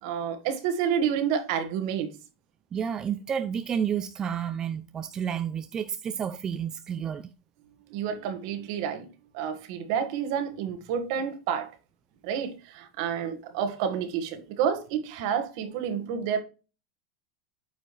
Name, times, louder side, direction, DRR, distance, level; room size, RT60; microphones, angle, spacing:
voice 1, 0.0-2.2 7.9-9.1 9.3-11.7 12.2-16.4, right 8 dB, 65° right, 1.6 m, -29 dB
voice 2, 2.7-7.3, right 8 dB, 25° right, 0.5 m, -30 dB
9.0 x 4.9 x 3.1 m
supercardioid pair, 120°, 2 cm